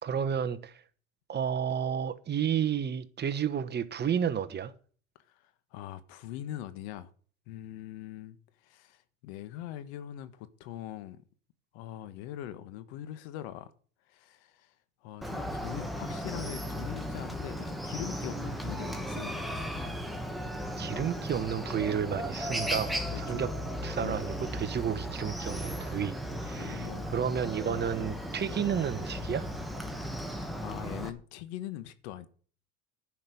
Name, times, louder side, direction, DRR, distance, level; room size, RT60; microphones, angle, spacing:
voice 1, 0.0-0.8 1.3-4.7 20.8-23.5 23.8-26.2 26.4-26.9 27.1-29.5, right 8 dB, 30° right, 1.2 m, -31 dB
voice 2, 5.3-7.1 7.5-8.4 8.6-11.2 11.7-13.7 14.1-14.7 15.0-19.5 20.6-21.0 22.6-22.8 23.1-23.5 24.0-24.2 26.6-27.1 27.6-27.8 30.3-32.3, left 12 dB, 80° left, 1.5 m, -42 dB
Chicken rooster, 15.2-31.1, equal, ahead, 1.8 m, -36 dB
11.0 x 6.0 x 8.4 m
supercardioid pair, 100°, 32 cm